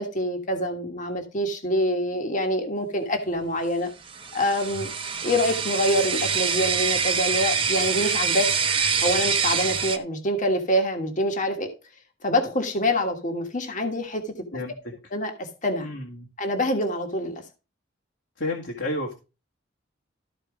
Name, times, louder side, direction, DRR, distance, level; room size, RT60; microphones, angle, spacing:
voice 1, 0.0-3.9 4.3-4.9 5.2-8.5 9.0-11.7 12.2-14.3 15.1-15.9 16.4-17.3, left 1 dB, 40° left, 4 dB, 1.5 m, -25 dB
sound 1, 4.1-10.0, right 6 dB, 30° right, 0.7 m, -25 dB
voice 2, 15.8-16.3 18.4-19.1, left 1 dB, 70° left, -2 dB, 2.0 m, -30 dB
13.5 x 4.6 x 4.9 m, 0.30 s
head